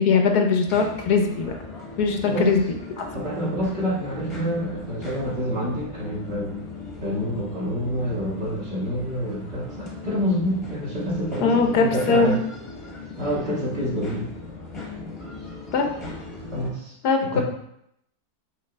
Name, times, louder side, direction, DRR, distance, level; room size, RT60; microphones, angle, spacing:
voice 1, 0.0-1.5 2.0-2.6 3.0-3.1 11.4-12.3 15.7-15.9 17.0-17.4, left 4 dB, 75° left, 4 dB, 1.3 m, -20 dB
sound 1, 0.6-16.7, left 3 dB, 20° left, 1.1 m, -38 dB
voice 2, 2.2-2.5 3.1-6.6 7.0-12.4 13.2-14.3 16.5-16.9 17.2-17.4, equal, 40° right, -6 dB, 1.8 m, -27 dB
8.2 x 4.1 x 3.3 m, 0.77 s
omnidirectional pair, 1.7 m